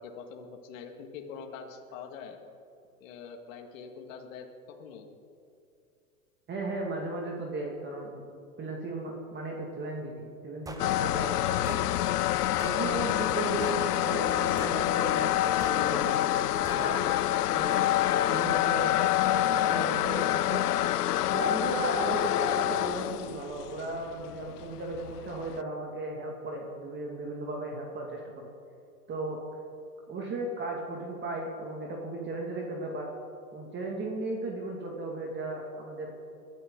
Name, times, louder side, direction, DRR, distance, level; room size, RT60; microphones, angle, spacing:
voice 1, 0.0-2.4 3.0-5.1, left 6 dB, 55° left, 3 dB, 2.1 m, -44 dB
voice 2, 6.5-8.3 8.6-11.8 12.6-15.3 15.6-16.4 16.7-17.1 17.5-17.8 18.3-19.0 19.2-20.6 21.3-28.5 29.1-29.4 30.1-33.1 33.5-36.1, right 2 dB, 25° right, 0 dB, 2.1 m, -36 dB
Weapon Revolver Shots Stereo, 10.7-10.9 11.7-11.9 12.6-12.8 13.6-13.9 14.6-14.9 15.6-15.8 16.6-16.9, right 2 dB, 10° right, 1.0 m, -43 dB
sound 1, 10.8-25.6, left 13 dB, 85° left, 0.6 m, -27 dB
22.0 x 12.5 x 3.8 m, 2.6 s
hypercardioid pair, 120°, 45 cm